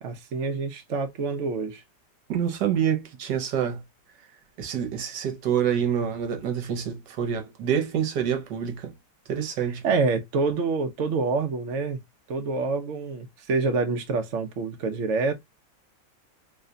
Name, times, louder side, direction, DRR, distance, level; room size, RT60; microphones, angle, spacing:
voice 1, 0.0-1.8 9.8-12.0 12.3-15.3, right 4 dB, 55° right, 0.9 m, -27 dB
voice 2, 2.3-3.8 4.6-8.9 9.3-9.8, right 8 dB, 70° right, 1.4 m, -27 dB
3.2 x 2.2 x 3.7 m
omnidirectional pair, 2.0 m